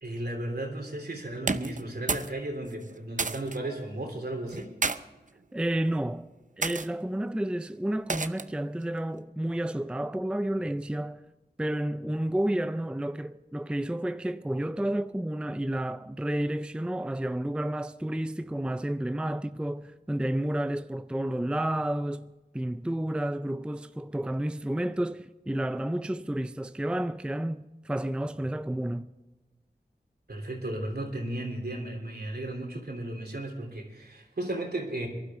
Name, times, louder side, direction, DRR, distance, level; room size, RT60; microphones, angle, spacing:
voice 1, 0.0-4.7 30.3-35.1, right 1 dB, 70° right, 3.3 m, -35 dB
sound 1, 1.4-2.4 2.6-3.6 4.5-5.0 5.7-6.0 6.6-6.9 8.1-8.6, right 4 dB, 50° right, 0.6 m, -31 dB
voice 2, 5.5-6.3 6.6-11.2 11.6-22.3 22.5-29.1, right 1 dB, 5° right, 0.4 m, -31 dB
23.0 x 11.5 x 3.7 m
wide cardioid pair, 45°, 17 cm